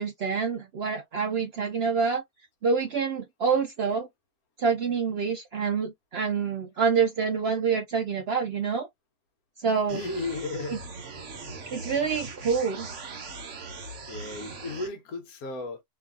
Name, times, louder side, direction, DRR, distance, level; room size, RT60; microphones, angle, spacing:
voice 1, 0.0-2.2 2.6-4.1 4.6-8.9 9.6-10.0 10.7-10.8 11.7-12.9, right 5 dB, 75° right, 0.5 m, -27 dB
voice 2, 9.9-10.8 14.1-15.8, left 3 dB, 65° left, 1.2 m, -34 dB
sound 1, 9.9-14.9, right 3 dB, 55° right, 1.1 m, -40 dB
3.0 x 2.4 x 2.4 m
omnidirectional pair, 1.7 m